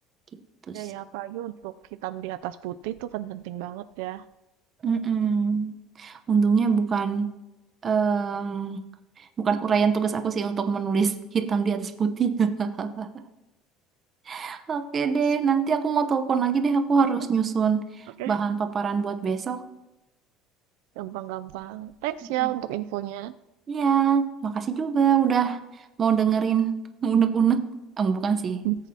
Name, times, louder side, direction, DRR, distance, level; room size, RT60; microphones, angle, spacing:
voice 1, 0.7-1.7 2.0-4.2 18.2-18.4 21.0-23.3 28.6-28.8, right 15 dB, 90° right, 11 dB, 0.4 m, -32 dB
voice 2, 4.8-7.3 7.8-8.8 9.4-13.2 14.3-17.8 18.3-19.6 22.2-22.5 23.7-25.6 26.0-27.7 28.0-28.6, right 6 dB, 30° right, 8 dB, 0.8 m, -24 dB
18.0 x 8.1 x 2.8 m, 0.97 s
cardioid pair, 145°, 0 cm